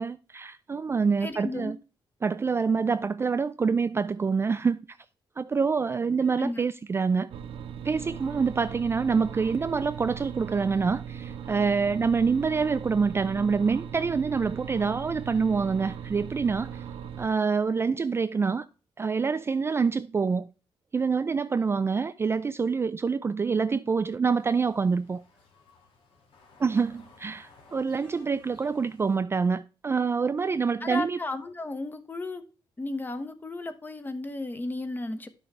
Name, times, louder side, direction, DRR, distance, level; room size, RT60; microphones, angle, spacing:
voice 1, 0.0-1.8 2.2-4.8 5.4-7.3 7.8-16.8 17.2-18.7 19.0-20.5 20.9-25.2 26.6-31.2, right 5 dB, 25° right, 0.3 m, -26 dB
voice 2, 1.2-1.8 6.3-6.6 30.8-32.4 32.8-35.3, left 2 dB, 20° left, 1.0 m, -34 dB
sound 1, 7.3-17.3, right 8 dB, 90° right, 1.2 m, -39 dB
sound 2, 24.4-29.2, left 3 dB, 75° left, 2.7 m, -58 dB
11.0 x 6.3 x 3.3 m
cardioid pair, 120°, 9 cm